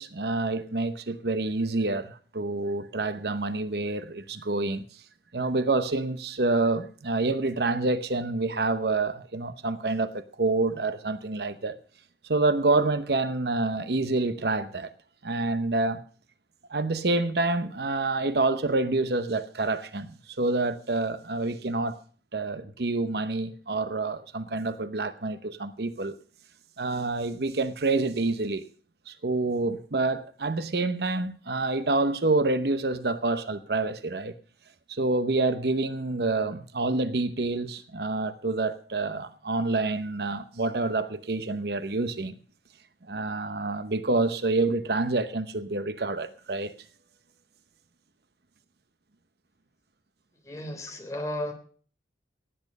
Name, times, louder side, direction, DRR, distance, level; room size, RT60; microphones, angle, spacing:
voice 1, 0.0-4.8 5.3-11.8 12.2-14.9 15.2-16.0 16.7-22.0 22.3-26.1 26.8-28.7 29.1-34.3 34.9-42.3 43.1-46.7, right 3 dB, 65° right, 0.9 m, -27 dB
voice 2, 50.4-51.5, left 1 dB, 20° left, 3.2 m, -34 dB
17.5 x 8.9 x 5.3 m
head